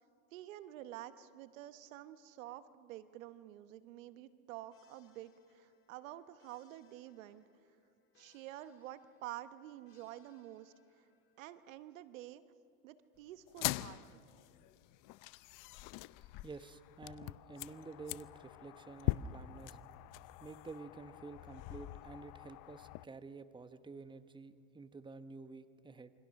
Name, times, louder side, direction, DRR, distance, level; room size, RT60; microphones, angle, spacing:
voice 1, 0.3-7.4 8.2-11.0 11.4-12.4 12.8-14.0, right 13 dB, 80° right, 13 dB, 1.2 m, -49 dB
sound 1, 4.7-11.6, left 7 dB, 35° left, 2.8 m, -73 dB
sound 2, 13.5-23.0, left 17 dB, 55° left, 0.7 m, -43 dB
voice 2, 16.4-19.8 20.4-26.1, right 4 dB, 10° right, 11 dB, 1.2 m, -50 dB
27.5 x 25.0 x 6.5 m, 2.4 s
supercardioid pair, 95°, 39 cm